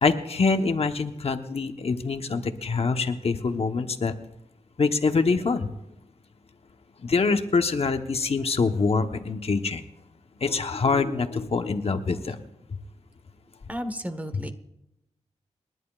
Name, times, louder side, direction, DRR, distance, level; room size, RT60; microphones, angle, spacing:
voice 1, 0.0-4.1 4.8-5.7 7.0-9.8 10.4-12.4, left 4 dB, 55° left, 6 dB, 1.1 m, -25 dB
voice 2, 13.7-14.5, equal, 10° right, 8 dB, 1.2 m, -33 dB
29.5 x 11.0 x 2.4 m, 0.88 s
wide cardioid pair, 90°, 12 cm